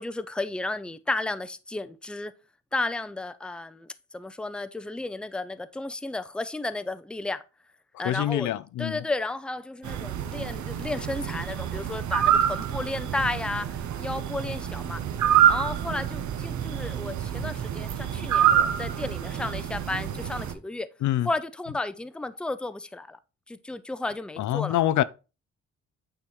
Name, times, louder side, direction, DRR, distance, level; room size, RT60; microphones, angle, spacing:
voice 1, 0.0-2.3 2.7-7.4 8.0-8.5 8.8-13.7 14.0-15.0 15.5-20.9 21.2-23.2 23.5-24.8, left 2 dB, 5° left, 0.5 m, -33 dB
voice 2, 7.9-9.0 21.0-21.3 24.4-25.0, left 13 dB, 75° left, 0.5 m, -25 dB
sound 1, 9.8-20.5, right 10 dB, 70° right, 0.9 m, -27 dB
8.9 x 3.6 x 4.5 m
cardioid pair, 95°, 30 cm